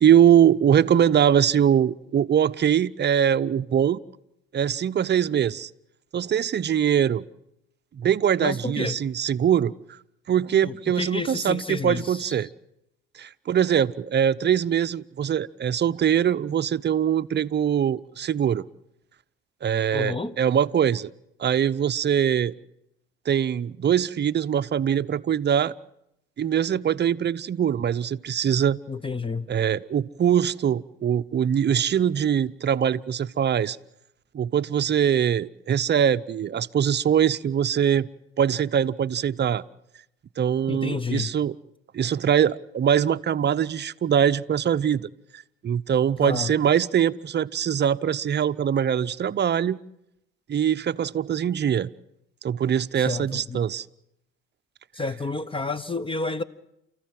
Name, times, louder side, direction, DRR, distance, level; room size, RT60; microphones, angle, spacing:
voice 1, 0.0-4.0 4.5-5.7 6.1-7.3 7.9-9.7 10.3-12.5 13.1-18.6 19.6-21.1 21.4-22.5 23.3-25.7 26.4-28.8 29.5-33.8 34.3-38.1 38.4-39.6 40.4-41.6 41.9-45.1 45.3-49.8 50.5-51.9 52.4-53.8, right 9 dB, 35° right, 0.8 m, -22 dB
voice 2, 8.4-9.0 10.6-12.3 19.9-20.3 28.9-29.5 40.7-41.3 46.2-46.5 53.0-53.6 54.9-56.4, left 3 dB, 20° left, 1.0 m, -30 dB
30.0 x 14.5 x 7.7 m
hypercardioid pair, 70°, 30 cm